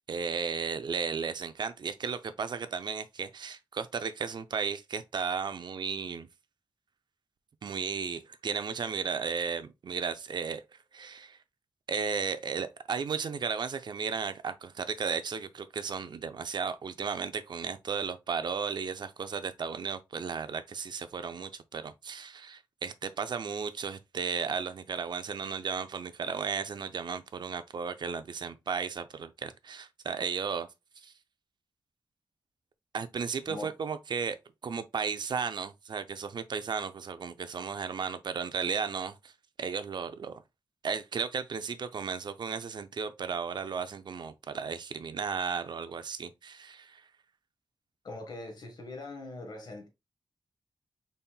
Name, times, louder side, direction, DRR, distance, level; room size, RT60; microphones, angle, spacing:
voice 1, 0.1-6.3 7.6-10.6 10.9-11.4 11.9-30.7 31.0-31.1 32.9-34.4 34.6-39.3 39.6-40.4 40.8-47.0, right 6 dB, 60° right, 0.6 m, -34 dB
voice 2, 48.0-49.9, left 2 dB, 55° left, 1.5 m, -41 dB
5.5 x 4.1 x 2.3 m
wide cardioid pair, 135°, 8 cm